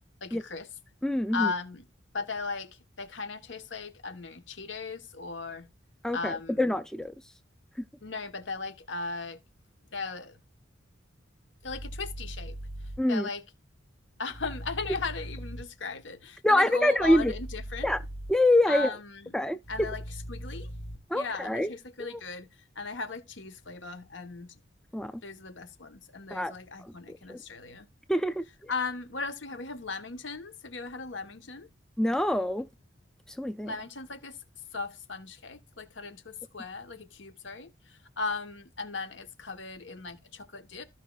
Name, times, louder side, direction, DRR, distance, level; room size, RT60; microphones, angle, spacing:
voice 1, 0.2-0.7 1.3-1.8 2.1-5.7 6.1-6.7 8.0-9.4 9.9-10.4 11.6-12.6 13.1-13.4 14.2-17.9 18.7-19.3 19.7-20.0 20.3-20.7 21.1-22.5 22.7-24.6 25.2-27.9 28.7-31.7 33.6-34.4 34.7-40.9, left 4 dB, 70° left, 1.2 m, -37 dB
voice 2, 1.0-1.5 6.0-7.1 13.0-13.3 16.4-17.3 17.8-18.0 18.3-18.9 19.3-19.6 21.1-21.7 24.9-25.1 26.3-26.5 26.8-27.4 28.1-28.7 32.0-32.7 33.3-33.7, left 1 dB, 5° left, 0.4 m, -25 dB
sound 1, 11.6-13.0 14.3-15.6 17.0-18.3 19.6-21.0, right 1 dB, 35° left, 2.1 m, -40 dB
14.5 x 5.4 x 2.4 m
head